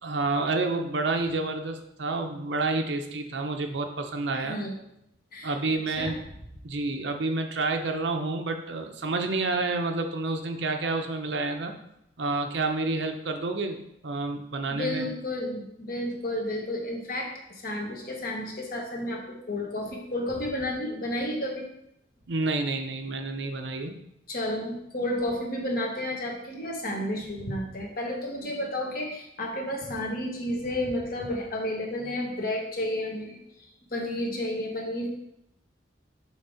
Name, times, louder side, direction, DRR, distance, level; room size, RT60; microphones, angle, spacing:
voice 1, 0.0-4.6 5.4-6.2 6.6-11.7 12.2-13.8 14.0-15.1 22.3-24.0, right 3 dB, 75° right, 5 dB, 0.8 m, -29 dB
voice 2, 4.3-4.8 5.3-6.2 14.7-21.6 24.3-35.1, left 1 dB, 55° left, 0 dB, 1.4 m, -32 dB
7.1 x 3.6 x 4.9 m, 0.79 s
head